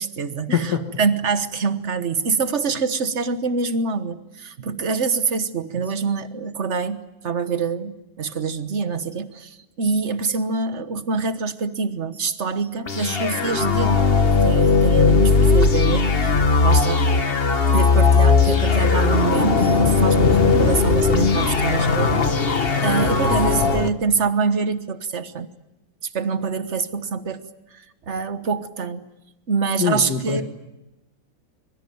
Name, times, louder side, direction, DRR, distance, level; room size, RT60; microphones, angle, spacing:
voice 1, 0.0-0.7 1.0-16.4 16.6-17.1 17.7-25.5 26.1-27.4 27.7-29.1 29.5-30.4, right 5 dB, 40° right, 11 dB, 1.4 m, -25 dB
voice 2, 0.5-0.9 29.8-30.4, left 6 dB, 55° left, 4 dB, 2.3 m, -23 dB
sound 1, 12.9-23.9, left 4 dB, 35° left, 1.4 m, -18 dB
25.5 x 23.0 x 9.4 m, 0.95 s
omnidirectional pair, 2.1 m